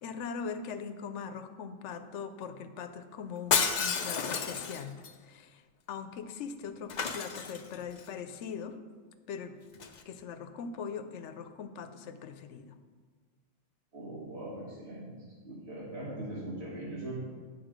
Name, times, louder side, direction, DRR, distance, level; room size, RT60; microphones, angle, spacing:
voice 1, 0.0-8.8 9.3-9.6 10.1-12.8, left 6 dB, 80° left, 9 dB, 1.0 m, -41 dB
Shatter, 3.5-5.1 6.9-8.0 9.7-10.0, left 6 dB, 50° left, 0.6 m, -31 dB
voice 2, 13.9-17.2, right 1 dB, 65° right, -7 dB, 2.0 m, -40 dB
9.8 x 5.5 x 5.1 m, 1.5 s
omnidirectional pair, 1.2 m